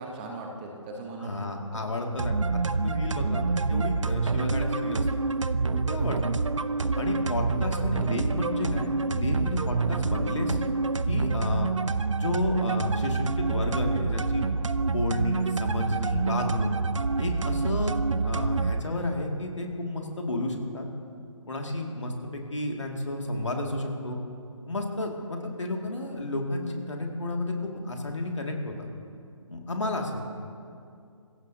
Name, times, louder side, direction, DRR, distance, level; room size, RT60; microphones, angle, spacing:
voice 1, 0.0-1.3 1.7-1.8 5.5-6.1, right 2 dB, 15° right, 1 dB, 1.0 m, -39 dB
voice 2, 1.2-5.1 5.9-6.2 7.0-10.6 11.1-11.7 12.1-14.5 14.9-16.7 17.2-20.9 21.5-24.2 24.7-28.7 29.5-30.2, left 2 dB, 65° left, 1 dB, 2.2 m, -31 dB
sound 1, 2.2-18.8, right 4 dB, 65° right, 0.6 m, -27 dB
24.5 x 16.0 x 2.8 m, 2.4 s
figure-of-eight pair, 145°, 17 cm